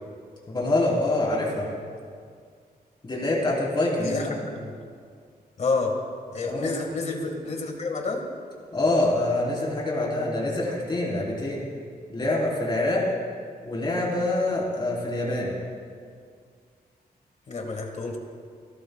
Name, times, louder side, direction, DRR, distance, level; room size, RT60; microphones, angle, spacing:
voice 1, 0.5-1.7 3.0-4.4 6.4-6.7 8.7-11.6 12.1-13.0 13.6-15.5, left 2 dB, 30° left, -4 dB, 3.7 m, -25 dB
voice 2, 4.0-4.7 5.6-6.0 6.3-8.3 17.5-18.2, left 3 dB, 45° left, 3 dB, 1.8 m, -29 dB
27.0 x 12.5 x 2.3 m, 2.1 s
wide cardioid pair, 145°, 16 cm